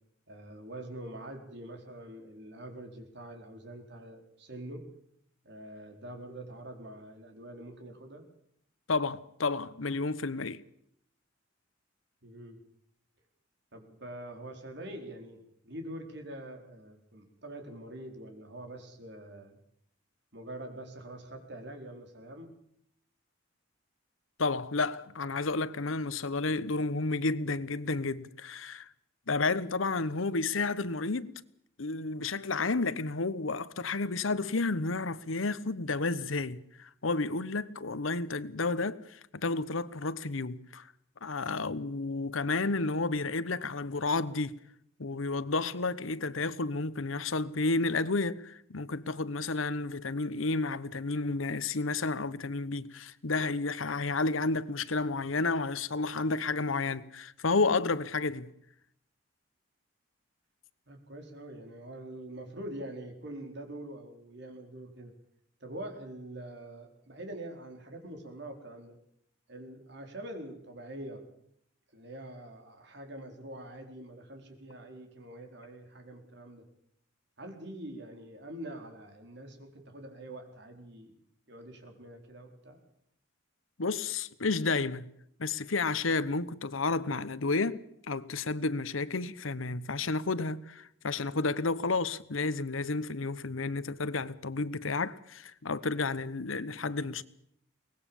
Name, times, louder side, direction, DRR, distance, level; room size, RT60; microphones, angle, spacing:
voice 1, 0.3-4.8 5.4-8.2 12.2-12.6 13.7-19.6 20.3-22.5 41.5-41.7 60.9-65.1 65.6-69.0 69.5-71.3 71.9-76.6 77.4-81.2 81.5-82.8, right 1 dB, 60° right, 4.5 m, -45 dB
voice 2, 8.9-10.6 24.4-28.9 29.3-31.3 31.8-40.9 41.2-44.6 45.0-58.5 83.8-85.1 85.4-97.2, left 3 dB, 85° left, 1.0 m, -31 dB
23.0 x 19.5 x 7.2 m
head